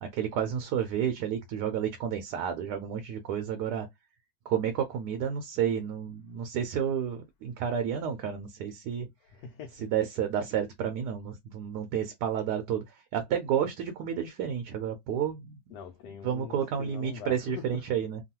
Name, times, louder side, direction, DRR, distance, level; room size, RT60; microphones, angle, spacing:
voice 1, 0.0-3.9 4.5-9.1 9.8-15.5 16.2-18.2, right 8 dB, 75° right, 1.0 m, -31 dB
voice 2, 9.2-9.9 15.7-17.8, left 7 dB, 75° left, 1.1 m, -43 dB
3.0 x 2.2 x 2.8 m
omnidirectional pair, 2.0 m